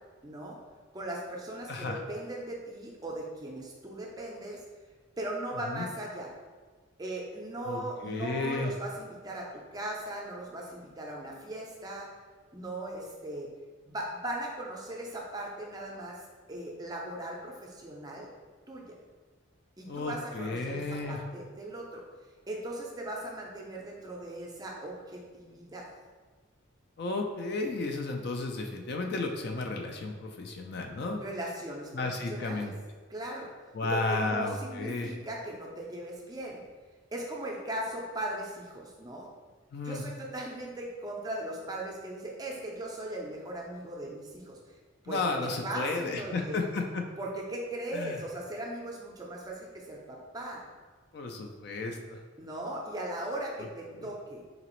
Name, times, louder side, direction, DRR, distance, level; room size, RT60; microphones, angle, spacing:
voice 1, 0.2-0.6 0.9-4.6 5.2-6.3 7.0-12.1 12.5-13.5 13.9-16.2 16.5-18.3 18.7-18.9 19.8-20.8 21.1-22.0 22.5-25.9 31.2-32.7 33.1-33.5 33.8-36.6 37.1-39.3 39.8-44.6 45.0-46.6 47.2-50.7 52.4-54.4, right 1 dB, 20° right, -2 dB, 0.4 m, -38 dB
voice 2, 1.7-2.0 5.7-5.9 7.7-8.7 19.8-21.2 27.0-31.2 31.9-32.7 33.7-35.1 39.7-40.0 45.1-47.0 47.9-48.2 51.1-52.2 53.9-54.0, left 3 dB, 50° left, 3 dB, 0.3 m, -33 dB
4.0 x 2.9 x 3.0 m, 1.4 s
head